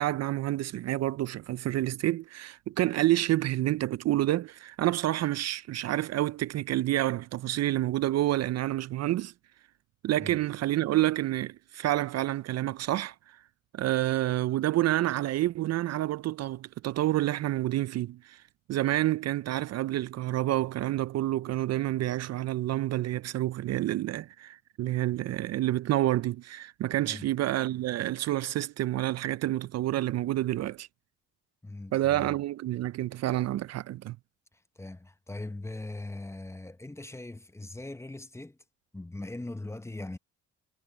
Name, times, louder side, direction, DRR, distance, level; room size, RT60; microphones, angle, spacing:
voice 1, 0.0-9.3 10.0-13.4 13.7-18.4 18.7-30.9 31.9-34.2, right 15 dB, 60° right, 0.4 m, -28 dB
voice 2, 31.6-32.3 34.8-38.6 38.9-40.2, left 2 dB, 10° left, 0.8 m, -40 dB
cardioid pair, 90°, 30 cm